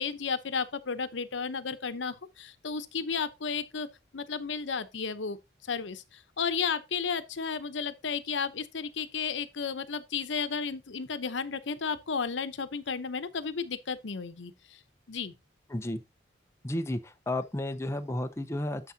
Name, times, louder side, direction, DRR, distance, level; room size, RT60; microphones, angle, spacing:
voice 1, 0.0-3.9 4.1-14.8 15.1-15.3, left 5 dB, 85° left, 0.8 m, -33 dB
voice 2, 16.6-18.9, left 1 dB, 15° left, 0.6 m, -32 dB
9.4 x 7.1 x 2.7 m
head